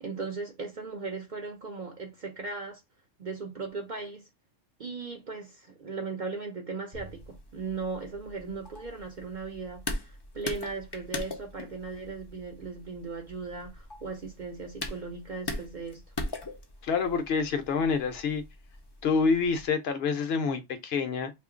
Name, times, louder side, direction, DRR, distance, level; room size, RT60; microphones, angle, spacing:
voice 1, 0.0-2.8 3.2-4.3 4.8-16.0, right 4 dB, 55° right, 0.6 m, -37 dB
sound 1, 6.9-19.7, left 2 dB, 35° left, 0.4 m, -41 dB
voice 2, 16.8-18.4 19.0-21.3, left 5 dB, 60° left, 0.8 m, -27 dB
2.8 x 2.4 x 3.6 m
omnidirectional pair, 1.3 m